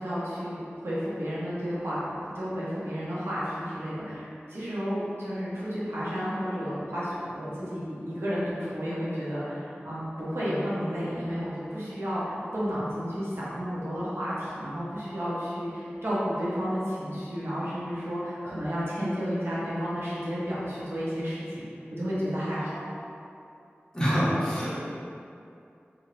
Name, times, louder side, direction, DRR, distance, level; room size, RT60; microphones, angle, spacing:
voice 1, 0.0-21.6 21.9-22.9, equal, 75° right, -9 dB, 0.8 m, -32 dB
voice 2, 23.9-24.8, equal, 15° left, -9 dB, 1.0 m, -25 dB
2.6 x 2.6 x 3.1 m, 2.6 s
wide cardioid pair, 45°, 4 cm